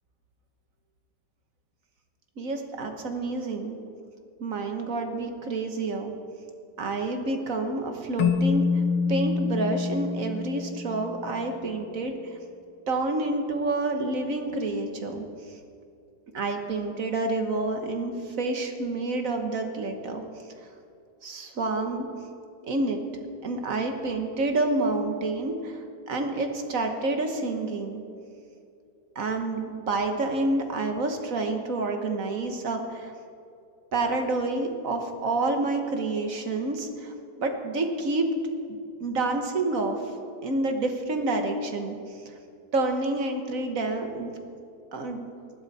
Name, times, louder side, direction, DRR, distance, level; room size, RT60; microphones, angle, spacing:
voice 1, 2.4-3.8 4.4-6.1 6.8-8.8 9.1-12.4 12.9-15.2 16.3-20.2 21.2-22.1 22.7-23.0 23.4-28.0 29.1-33.1 33.9-37.1 37.4-38.3 39.0-40.0 40.4-42.2 42.7-44.3 44.9-45.3, right 2 dB, 50° right, 5 dB, 1.5 m, -28 dB
Keyboard (musical), 8.2-11.4, left 5 dB, 80° left, 1.4 m, -26 dB
20.0 x 12.0 x 4.2 m, 2.4 s
omnidirectional pair, 2.0 m